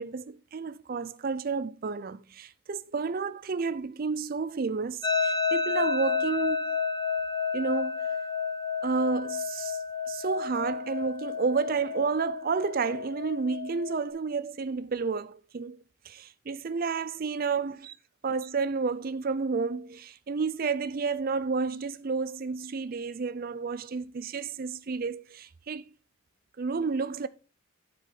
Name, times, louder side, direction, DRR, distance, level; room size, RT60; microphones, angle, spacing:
voice 1, 0.0-6.8 7.5-8.1 8.8-9.8 10.1-17.9 18.2-25.9 26.6-27.3, right 4 dB, 45° right, 0.4 m, -31 dB
sound 1, 5.0-14.1, left 5 dB, 20° left, 1.0 m, -31 dB
11.0 x 4.6 x 3.9 m
head